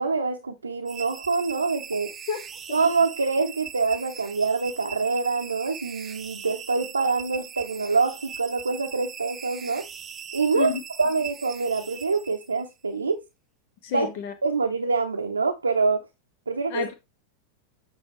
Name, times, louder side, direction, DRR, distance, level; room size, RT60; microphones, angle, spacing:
voice 1, 0.0-2.1 2.7-9.9 10.3-13.2 13.9-14.1 14.4-16.0 16.5-16.8, right 4 dB, 75° right, 0.7 m, -25 dB
sound 1, 0.9-12.7, right 8 dB, 25° right, 0.8 m, -40 dB
voice 2, 13.8-14.3 16.7-16.9, left 6 dB, 50° left, 1.4 m, -29 dB
8.1 x 4.9 x 3.1 m
figure-of-eight pair, 90°, 0 cm